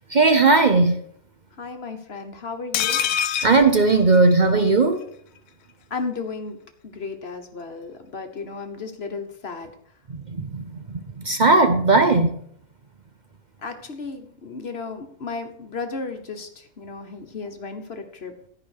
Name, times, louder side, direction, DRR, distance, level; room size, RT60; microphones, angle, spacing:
voice 1, 0.1-1.0 3.4-5.0 10.4-10.6 11.3-12.3, right 3 dB, 45° right, 7 dB, 0.6 m, -17 dB
voice 2, 1.6-3.0 5.9-6.6 6.8-9.7 13.6-18.3, left 4 dB, 45° left, 6 dB, 1.3 m, -34 dB
sound 1, 2.7-4.7 5.0-5.1 5.4-5.5, left 9 dB, 80° left, 1.1 m, -26 dB
13.0 x 5.2 x 6.5 m, 0.66 s
omnidirectional pair, 1.6 m